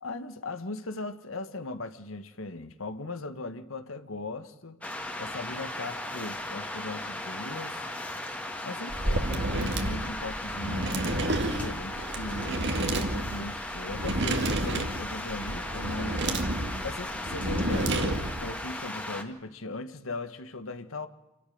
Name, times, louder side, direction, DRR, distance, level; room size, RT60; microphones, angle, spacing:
voice 1, 0.0-4.8 5.2-7.9 8.6-10.9 11.2-16.2 16.8-21.1, left 2 dB, 85° left, 1.6 m, -38 dB
sound 1, 4.8-19.2, left 1 dB, 5° left, 2.1 m, -37 dB
sound 2, 8.9-18.5, right 1 dB, 60° right, 2.2 m, -30 dB
27.5 x 13.0 x 9.4 m
head